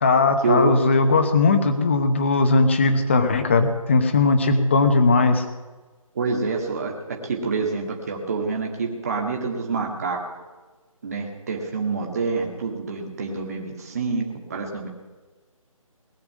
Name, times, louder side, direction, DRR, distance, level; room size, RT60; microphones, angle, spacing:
voice 1, 0.0-5.4, left 3 dB, 20° left, 8 dB, 0.9 m, -19 dB
voice 2, 6.2-6.9 7.2-10.2 11.0-14.9, right 3 dB, 25° right, 1 dB, 1.9 m, -26 dB
19.5 x 6.8 x 9.3 m, 1.3 s
hypercardioid pair, 175°, 18 cm